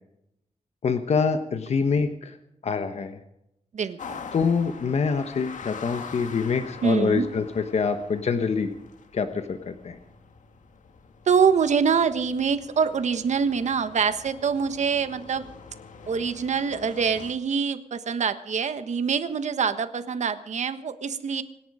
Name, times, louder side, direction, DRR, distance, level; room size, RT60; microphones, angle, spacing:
voice 1, 0.8-2.3 2.6-3.2 4.3-8.7 9.1-10.0, left 5 dB, 60° left, 8 dB, 1.2 m, -25 dB
voice 2, 3.7-4.2 6.8-7.2 11.3-15.5 16.1-21.4, right 6 dB, 65° right, 10 dB, 1.3 m, -25 dB
sound 1, 4.0-17.3, left 5 dB, 85° left, 1.7 m, -44 dB
26.0 x 10.5 x 5.0 m, 0.82 s
wide cardioid pair, 170°, 13 cm